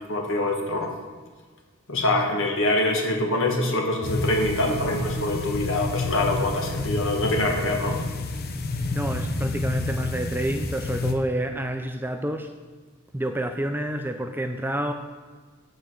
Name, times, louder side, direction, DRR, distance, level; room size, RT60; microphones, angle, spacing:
voice 1, 0.1-0.9 1.9-8.0, left 1 dB, 65° left, 1 dB, 1.6 m, -24 dB
sound 1, 4.0-11.1, left 2 dB, 45° left, 0.7 m, -29 dB
voice 2, 8.9-12.5 13.1-14.9, right 1 dB, 10° right, 6 dB, 0.4 m, -28 dB
7.3 x 5.0 x 6.3 m, 1.5 s
head